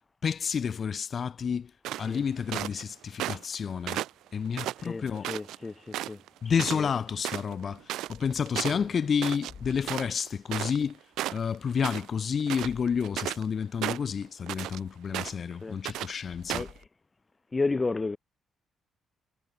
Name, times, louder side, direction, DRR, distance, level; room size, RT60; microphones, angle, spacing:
voice 1, 0.2-1.7 2.0-4.0 4.3-5.3 6.4-7.8 8.1-11.0 11.3-16.7, left 6 dB, 50° left, 1.3 m, -30 dB
sound 1, 1.8-2.8 3.2-3.5 3.9-5.6 5.9-6.3 6.6-6.8 7.1-10.9 11.2-12.1 12.4-13.5 13.8-14.8 15.1-15.5 15.8-16.1 16.5-16.8, right 14 dB, 85° right, 1.2 m, -34 dB
voice 2, 4.8-6.2 6.7-6.9 8.7-8.9 15.6-15.8 16.5-16.7 17.5-18.2, left 3 dB, 25° left, 1.6 m, -32 dB
cardioid pair, 90°, 0 cm